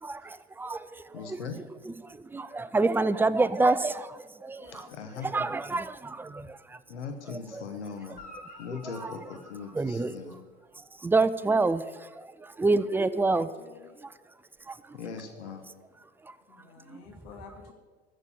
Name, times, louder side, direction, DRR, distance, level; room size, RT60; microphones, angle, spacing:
voice 1, 0.0-4.9 5.2-6.8 7.3-7.7 8.7-9.2 9.7-10.2 10.8-13.5 14.0-14.1 14.7-15.0 16.2-16.4 16.9-17.0, right 3 dB, 5° right, 14 dB, 0.4 m, -28 dB
voice 2, 1.1-1.6 4.9-5.5 6.9-8.2 8.6-10.4 14.9-15.7, left 5 dB, 80° left, 6 dB, 1.2 m, -40 dB
voice 3, 4.6-5.5 12.9-14.0 16.5-17.7, left 5 dB, 60° left, 3 dB, 2.3 m, -50 dB
Guitar, 8.1-10.7 14.5-14.6, left 2 dB, 25° left, 3.4 m, -51 dB
13.5 x 6.6 x 8.5 m, 1.4 s
hypercardioid pair, 75°, 35 cm